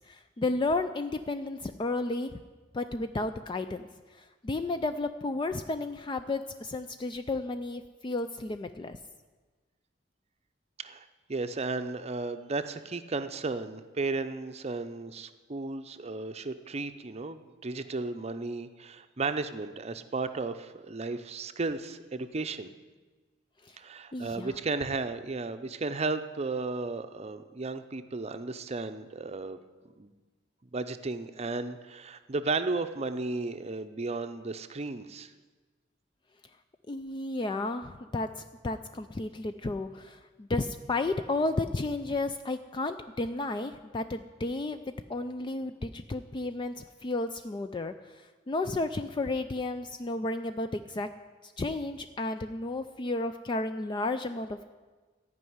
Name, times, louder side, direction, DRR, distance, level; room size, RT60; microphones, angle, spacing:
voice 1, 0.1-2.3 2.7-9.0 23.6-23.8 24.1-24.5 36.9-44.8 45.1-51.1 51.4-54.7, left 2 dB, 25° left, 9 dB, 0.4 m, -33 dB
voice 2, 10.8-22.7 23.8-29.6 30.0-30.1 30.6-35.3, right 3 dB, 35° right, 10 dB, 0.6 m, -34 dB
14.5 x 5.5 x 9.4 m, 1.3 s
head